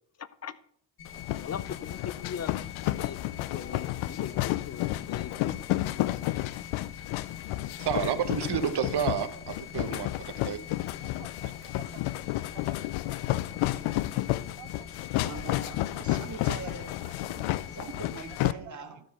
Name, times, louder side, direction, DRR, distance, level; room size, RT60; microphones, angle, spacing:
voice 1, 0.2-0.6 1.4-2.6 2.8-5.8 6.2-6.7, left 8 dB, 35° left, 17 dB, 0.6 m, -40 dB
sound 1, 1.0-18.4, left 8 dB, 50° left, 2.8 m, -46 dB
sound 2, 1.1-18.5, left 16 dB, 85° left, 0.5 m, -31 dB
voice 2, 7.8-10.6, right 8 dB, 55° right, 10 dB, 1.2 m, -30 dB
voice 3, 11.0-12.0 12.5-12.8 13.1-13.2 13.8-13.9 14.6-14.9 16.5-16.6 17.0-17.1 18.4-18.8, right 15 dB, 75° right, 17 dB, 0.6 m, -49 dB
voice 4, 15.2-16.9 17.2-19.0, right 4 dB, 35° right, 4 dB, 2.0 m, -42 dB
13.0 x 5.1 x 5.4 m, 0.65 s
cardioid pair, 80°, 47 cm